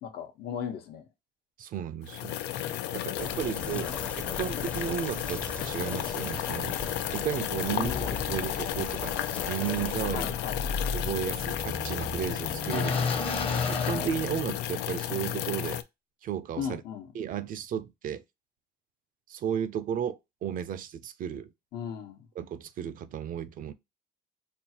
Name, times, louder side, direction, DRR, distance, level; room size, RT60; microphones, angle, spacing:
voice 1, 0.0-1.1 2.5-4.6 7.7-8.4 10.1-10.6 12.7-13.1 16.6-17.1 21.7-22.3, left 8 dB, 65° left, 1.0 m, -38 dB
voice 2, 1.6-2.4 2.9-9.1 9.5-10.4 10.9-12.9 13.2-13.4 13.7-15.8 16.2-16.8 17.1-18.2 19.3-21.5 22.4-23.7, right 9 dB, 55° right, 0.5 m, -34 dB
sound 1, 2.0-15.8, left 12 dB, 85° left, 0.4 m, -33 dB
sound 2, 3.2-9.9, left 1 dB, 5° left, 0.5 m, -41 dB
sound 3, 7.9-14.8, left 4 dB, 35° left, 0.9 m, -34 dB
5.4 x 2.4 x 2.8 m
cardioid pair, 110°, 17 cm